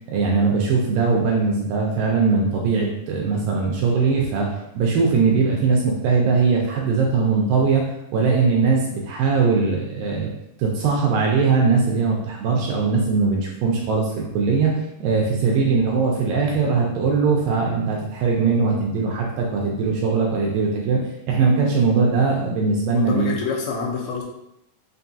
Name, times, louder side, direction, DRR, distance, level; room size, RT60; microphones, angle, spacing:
voice 1, 0.1-10.3 10.6-21.0 21.3-23.3, right 4 dB, 80° right, -1 dB, 2.1 m, -20 dB
voice 2, 22.9-24.2, left 5 dB, 85° left, -1 dB, 2.5 m, -27 dB
5.9 x 2.7 x 2.3 m, 0.82 s
omnidirectional pair, 4.3 m